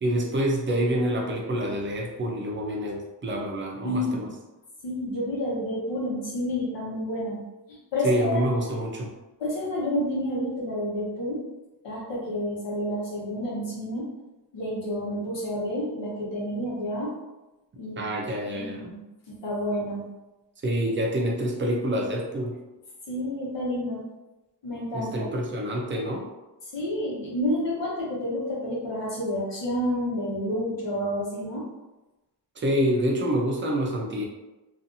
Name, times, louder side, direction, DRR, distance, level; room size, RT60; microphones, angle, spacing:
voice 1, 0.0-4.3 8.0-9.1 18.0-18.9 20.6-22.6 24.9-26.3 32.6-34.2, equal, 30° right, 0 dB, 0.4 m, -27 dB
voice 2, 3.8-4.3 4.8-7.4 7.7-8.5 9.4-11.4 11.8-14.1 14.5-17.1 17.8-18.0 18.5-20.0 23.1-24.0 24.6-25.3 26.7-31.6, left 1 dB, 85° left, -6 dB, 1.1 m, -29 dB
2.6 x 2.4 x 2.6 m, 1.1 s
wide cardioid pair, 165°, 43 cm